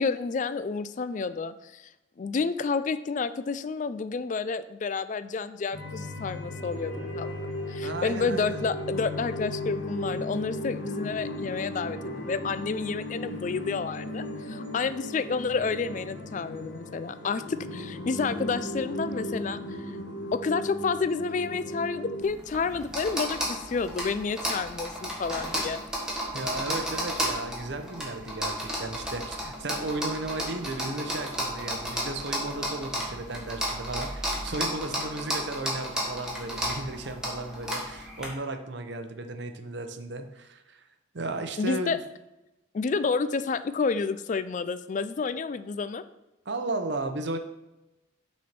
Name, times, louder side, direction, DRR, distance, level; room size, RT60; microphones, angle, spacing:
voice 1, 0.0-1.9 2.2-19.8 20.3-25.8 41.6-42.0 42.7-46.0, left 4 dB, 35° left, 13 dB, 0.3 m, -30 dB
sound 1, 5.7-22.3, left 1 dB, 60° left, 1.3 m, -36 dB
voice 2, 7.8-8.6 26.3-40.8 41.1-42.0 46.5-47.4, right 2 dB, 55° right, 7 dB, 0.7 m, -35 dB
sound 2, 22.2-38.3, equal, 5° right, 1.4 m, -33 dB
6.1 x 4.3 x 5.9 m, 0.99 s
head